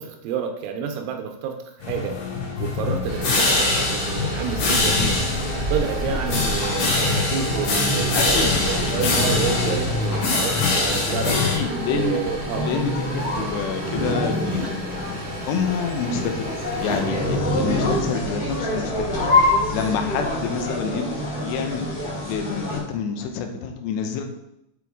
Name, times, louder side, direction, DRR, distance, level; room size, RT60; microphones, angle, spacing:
voice 1, 0.0-1.6 1.9-2.2 2.6-5.2 5.7-11.4 11.9-12.7 14.7-14.8, right 7 dB, 80° right, 4 dB, 2.9 m, -29 dB
sound 1, 1.8-11.6, left 3 dB, 65° left, 3.7 m, -24 dB
sound 2, 3.0-17.4, right 2 dB, 40° right, 1.6 m, -32 dB
sound 3, 3.4-22.8, left 1 dB, 45° left, 1.6 m, -27 dB
voice 2, 8.1-8.5 9.0-9.1 10.3-10.5 11.5-12.2 12.6-15.2 15.5-24.2, left 6 dB, 80° left, 5 dB, 2.5 m, -28 dB
7.5 x 4.4 x 3.5 m, 0.83 s
omnidirectional pair, 5.9 m